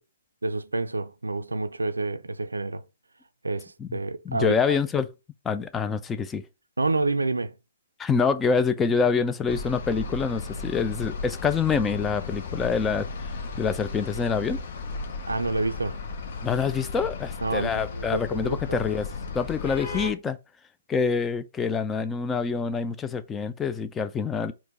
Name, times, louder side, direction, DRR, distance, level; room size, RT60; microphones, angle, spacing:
voice 1, 0.4-2.8 3.4-4.8 6.8-7.5 15.3-16.0 17.4-18.8, right 2 dB, 90° right, 0.4 m, -28 dB
voice 2, 4.3-5.1 5.5-6.4 8.0-13.1 13.6-14.6 16.4-19.1 19.3-20.4 20.9-24.5, left 5 dB, 15° left, 0.3 m, -26 dB
sound 1, 9.5-20.1, left 4 dB, 55° left, 0.7 m, -35 dB
4.4 x 2.1 x 3.9 m
figure-of-eight pair, 130°, 0 cm